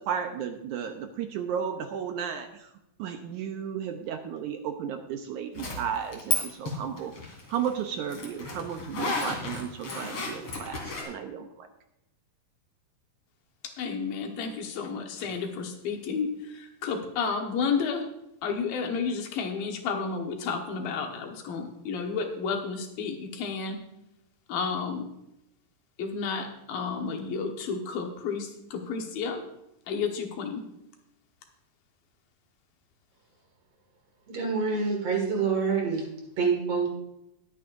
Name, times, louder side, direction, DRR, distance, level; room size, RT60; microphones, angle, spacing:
voice 1, 0.1-2.7 3.0-7.1 7.5-11.7, right 8 dB, 75° right, 6 dB, 2.0 m, -34 dB
Zipper (clothing), 5.5-6.4 6.7-11.0, left 2 dB, 45° left, 3.1 m, -32 dB
voice 2, 13.6-18.1 18.4-23.8 24.5-25.1 26.0-29.4 29.9-30.6, left 5 dB, 90° left, 3 dB, 3.1 m, -31 dB
voice 3, 34.3-36.1 36.4-36.9, right 5 dB, 50° right, 0 dB, 2.8 m, -26 dB
21.0 x 8.3 x 2.6 m, 0.84 s
omnidirectional pair, 4.0 m